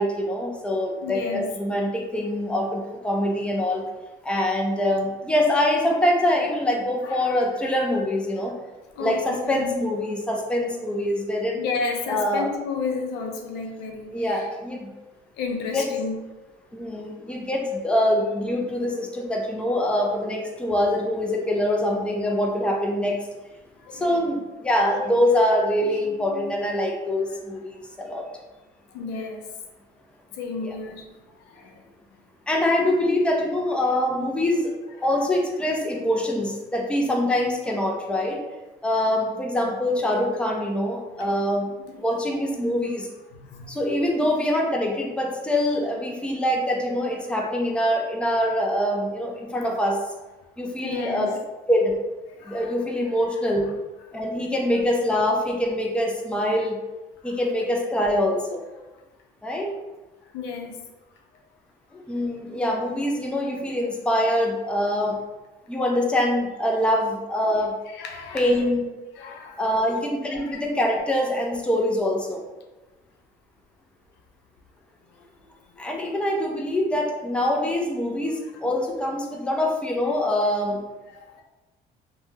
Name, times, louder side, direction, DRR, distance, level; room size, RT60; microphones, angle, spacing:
voice 1, 0.0-3.9 4.2-8.5 9.0-11.6 12.1-12.5 14.1-14.9 15.7-15.9 16.7-23.2 23.9-28.3 30.6-30.7 32.5-34.7 35.0-38.4 38.8-41.7 42.0-43.1 43.7-50.0 50.6-51.3 51.7-51.9 52.5-53.7 54.1-56.8 57.2-58.6 59.4-59.7 62.1-65.2 65.7-67.8 68.3-68.9 69.6-72.4 75.8-80.8, left 1 dB, 5° left, 0 dB, 0.5 m, -24 dB
voice 2, 1.0-1.5 7.0-8.0 8.4-8.5 9.0-9.7 11.6-14.5 15.3-16.2 23.8-24.3 24.7-25.3 25.8-25.9 26.3-26.5 27.3-27.4 28.9-29.5 30.3-31.1 31.4-31.9 36.9-37.0 41.2-41.5 41.9-42.0 43.3-43.8 50.8-51.3 52.3-53.2 54.1-54.3 57.2-57.4 60.3-60.9 67.9-68.6 69.1-69.6 70.3-70.6 75.1-75.2 76.1-76.2 80.1-80.2 81.1-81.4, left 4 dB, 90° left, 2 dB, 0.5 m, -33 dB
3.1 x 2.2 x 2.8 m, 1.1 s
cardioid pair, 110°, 17 cm